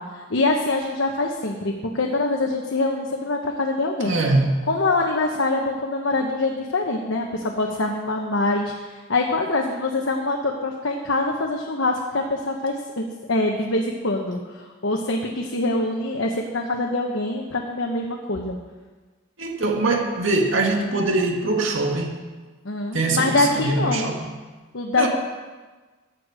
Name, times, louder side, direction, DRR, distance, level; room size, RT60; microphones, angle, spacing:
voice 1, 0.0-4.1 4.7-18.6 22.6-24.2 24.7-25.1, left 2 dB, 90° left, 1 dB, 1.1 m, -24 dB
voice 2, 4.1-4.5 19.4-22.2 22.9-24.3 25.0-25.1, right 2 dB, 85° right, 1 dB, 1.9 m, -22 dB
14.5 x 9.4 x 5.0 m, 1.3 s
head